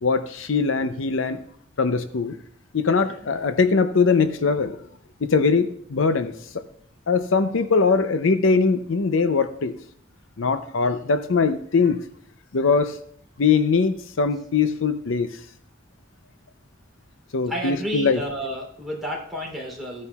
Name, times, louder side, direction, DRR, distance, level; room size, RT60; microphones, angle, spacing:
voice 1, 0.0-1.4 1.8-2.4 2.7-4.8 5.2-6.6 7.1-9.8 10.4-12.0 12.5-13.0 13.4-15.3 17.3-18.2, left 4 dB, 80° left, 10 dB, 0.6 m, -21 dB
voice 2, 17.5-20.1, equal, ahead, -3 dB, 3.1 m, -31 dB
15.0 x 9.7 x 2.4 m, 0.64 s
head